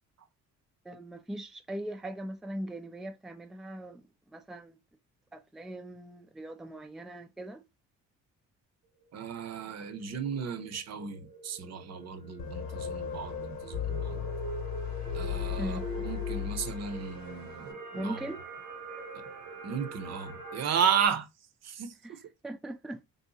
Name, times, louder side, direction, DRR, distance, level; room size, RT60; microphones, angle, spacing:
voice 1, 0.9-4.0 4.3-4.8 5.3-7.6 15.6-15.8 17.9-18.4 22.0-22.1 22.4-23.0, right 1 dB, ahead, 0.4 m, -39 dB
sound 1, 9.0-21.1, right 3 dB, 90° right, 1.1 m, -46 dB
voice 2, 9.1-14.3 15.1-18.2 19.6-21.3 21.6-21.9, right 7 dB, 60° right, 0.7 m, -34 dB
sound 2, 12.4-17.4, left 7 dB, 70° left, 0.9 m, -35 dB
3.5 x 2.7 x 2.7 m
cardioid pair, 90°, 30 cm